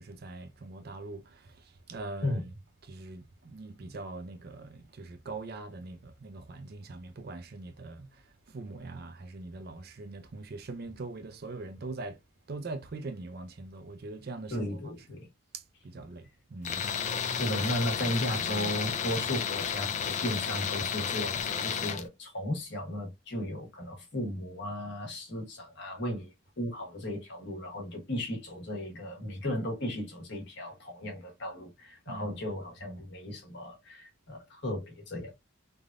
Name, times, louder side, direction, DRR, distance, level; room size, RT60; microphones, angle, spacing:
voice 1, 0.0-2.5 2.8-12.2 12.5-14.9 15.5-16.9 32.1-32.4 32.8-33.0, right 3 dB, 50° right, 0.4 m, -42 dB
voice 2, 14.5-15.3 17.4-26.3 26.6-35.3, left 1 dB, 55° left, 1.2 m, -35 dB
Tools, 16.6-22.0, left 7 dB, 35° left, 0.3 m, -32 dB
3.3 x 2.5 x 2.3 m
head